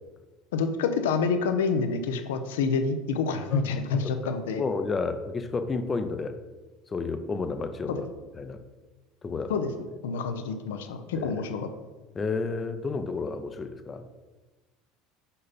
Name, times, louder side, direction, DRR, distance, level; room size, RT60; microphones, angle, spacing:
voice 1, 0.5-4.6 7.9-8.0 9.5-9.7 10.0-11.7, left 5 dB, 85° left, 8 dB, 0.6 m, -27 dB
voice 2, 4.6-6.4 6.9-8.1 8.3-8.6 9.2-9.5 11.1-11.3 12.1-14.0, left 4 dB, 25° left, 8 dB, 0.6 m, -31 dB
5.5 x 5.4 x 4.1 m, 1.2 s
hypercardioid pair, 85°, 0 cm